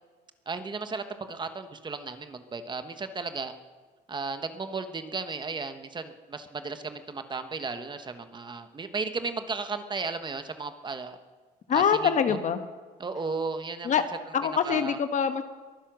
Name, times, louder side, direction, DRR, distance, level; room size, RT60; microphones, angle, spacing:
voice 1, 0.5-3.5 4.1-11.2 11.7-12.4 13.0-13.9 14.7-15.0, right 4 dB, 25° right, 9 dB, 1.2 m, -35 dB
voice 2, 11.7-12.6 13.8-14.0 14.3-15.4, left 7 dB, 45° left, 9 dB, 1.3 m, -24 dB
22.5 x 10.0 x 6.2 m, 1.4 s
cardioid pair, 110°, 17 cm